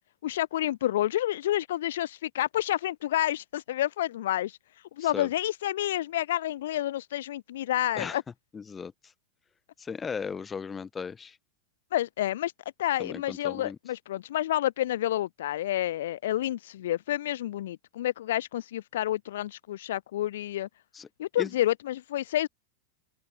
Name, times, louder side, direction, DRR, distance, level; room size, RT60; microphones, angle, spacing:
voice 1, 0.2-4.6 5.0-8.2 11.9-12.5 12.8-20.7 21.2-22.5, left 13 dB, 65° left, 0.5 m, -29 dB
voice 2, 5.0-5.3 7.9-8.2 8.5-8.9 9.8-11.4 13.0-13.8 20.9-21.1 21.4-21.5, left 6 dB, 20° left, 1.5 m, -36 dB
open air
hypercardioid pair, 95°, 0 cm